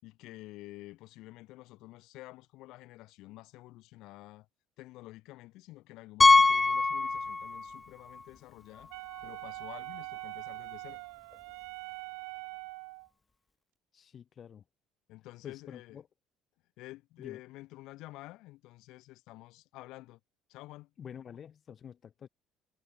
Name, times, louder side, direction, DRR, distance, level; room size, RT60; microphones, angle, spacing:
voice 1, 0.0-4.5 4.8-8.9 9.2-11.0 15.1-16.0 16.8-20.2 20.5-20.9, left 18 dB, 75° left, 4.9 m, -49 dB
Piano, 6.2-7.8 8.1-8.2 8.8-8.9 9.2-9.3 11.3-11.4, left 3 dB, 20° left, 0.3 m, -23 dB
Wind instrument woodwind instrument, 8.9-13.1, right 36 dB, 90° right, 0.6 m, -43 dB
voice 2, 13.9-14.6 15.4-16.1 17.2-17.4 21.0-22.3, left 8 dB, 45° left, 5.2 m, -48 dB
supercardioid pair, 90°, 0 cm